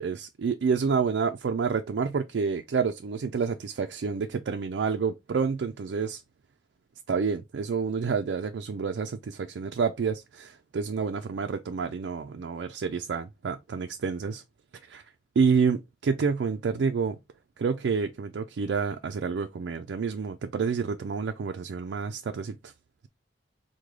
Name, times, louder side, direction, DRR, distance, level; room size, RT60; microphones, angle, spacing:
voice 1, 0.0-6.2 7.1-14.4 14.9-15.0 15.4-17.2 17.6-22.7, right 5 dB, 80° right, 0.4 m, -28 dB
4.7 x 2.2 x 3.6 m
head